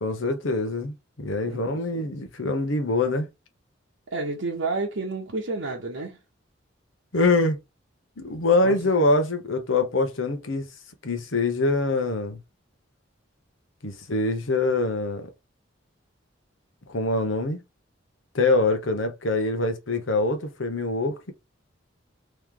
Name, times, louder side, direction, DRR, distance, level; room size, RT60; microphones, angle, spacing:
voice 1, 0.0-3.3 7.1-7.6 8.2-10.6 11.0-12.4 13.8-15.3 16.9-17.6 18.3-21.3, left 2 dB, 80° left, 1.0 m, -24 dB
voice 2, 1.4-2.1 4.1-6.2 8.6-8.8, right 3 dB, 80° right, 0.9 m, -30 dB
3.1 x 3.1 x 3.6 m
head